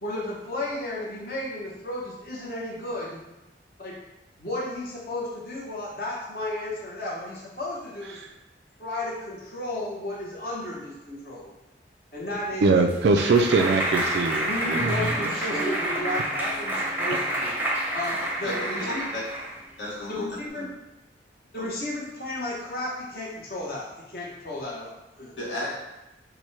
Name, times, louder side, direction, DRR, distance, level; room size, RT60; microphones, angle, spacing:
voice 1, 0.0-3.2 3.8-4.0 4.4-8.2 8.8-11.5 12.1-12.8 14.5-17.5 17.9-19.0 20.1-20.7 21.5-25.3, left 1 dB, 55° left, -5 dB, 1.0 m, -33 dB
Clapping, 12.3-19.6, right 1 dB, 10° right, 0.6 m, -28 dB
voice 2, 12.6-15.3, right 3 dB, 65° right, 4 dB, 0.3 m, -22 dB
voice 3, 18.4-19.2 19.8-20.6 21.6-21.7 25.3-25.7, left 1 dB, 80° left, -6 dB, 1.4 m, -33 dB
6.1 x 2.2 x 3.2 m, 0.96 s
head